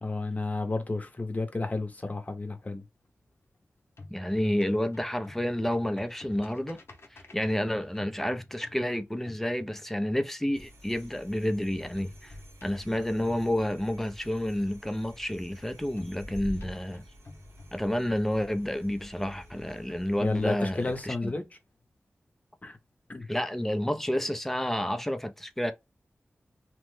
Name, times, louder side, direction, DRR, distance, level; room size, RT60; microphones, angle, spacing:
voice 1, 0.0-2.8 20.2-21.4 22.6-22.8 23.1-23.3, left 2 dB, 35° left, 0.8 m, -31 dB
sound 1, 2.0-3.6 3.8-10.3 12.0-14.3 16.0-18.3, left 2 dB, 60° left, 0.7 m, -51 dB
voice 2, 4.1-6.8 7.1-12.4 12.6-17.0 17.7-21.3 23.3-25.7, left 1 dB, 5° left, 0.5 m, -30 dB
sound 2, 10.5-21.1, equal, 75° right, 1.0 m, -48 dB
3.0 x 2.1 x 3.1 m
wide cardioid pair, 90°, 5 cm